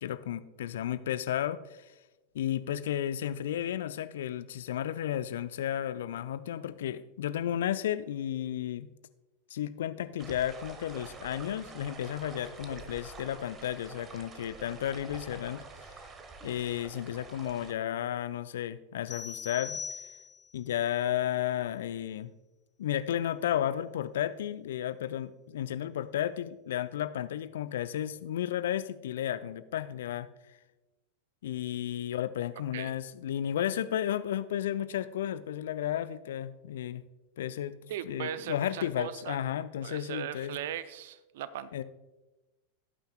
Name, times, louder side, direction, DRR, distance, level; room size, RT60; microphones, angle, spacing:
voice 1, 0.0-1.9 2.3-8.9 9.5-16.1 16.4-19.8 20.5-22.3 22.8-30.3 31.4-37.0 37.4-37.8 38.0-40.6 41.7-41.8, left 11 dB, 60° left, 13 dB, 0.5 m, -33 dB
sound 1, 10.2-17.7, right 4 dB, 25° right, 1.2 m, -47 dB
sound 2, 19.1-20.6, left 6 dB, 25° left, 0.8 m, -41 dB
voice 2, 37.9-39.4 39.8-41.8, right 10 dB, 55° right, 15 dB, 0.4 m, -38 dB
17.0 x 8.9 x 2.3 m, 1.1 s
figure-of-eight pair, 90°, 0 cm